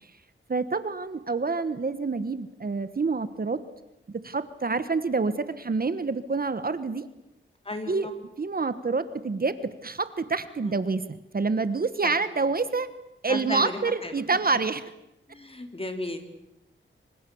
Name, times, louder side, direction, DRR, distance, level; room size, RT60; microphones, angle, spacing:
voice 1, 0.5-3.6 4.1-7.1 7.9-8.1 8.4-12.9 13.2-14.8, right 4 dB, 45° right, 12 dB, 1.3 m, -27 dB
voice 2, 7.6-8.1 10.6-10.8 12.0-12.1 13.3-14.4 15.3-16.2, left 2 dB, 25° left, 6 dB, 3.8 m, -35 dB
26.5 x 25.5 x 7.2 m, 0.88 s
wide cardioid pair, 95°, 21 cm